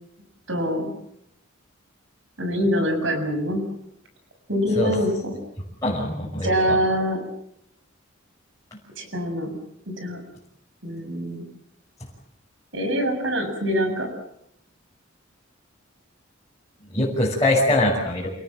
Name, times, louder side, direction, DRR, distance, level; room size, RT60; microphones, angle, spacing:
voice 1, 0.5-0.9 2.4-3.6 4.5-5.3 6.4-7.2 9.0-9.6 10.0-10.2 10.8-11.5 12.7-14.1, equal, 65° right, 6 dB, 7.2 m, -24 dB
voice 2, 5.8-6.8 16.9-18.3, left 1 dB, 15° left, -6 dB, 6.1 m, -22 dB
29.0 x 19.0 x 7.6 m, 0.74 s
head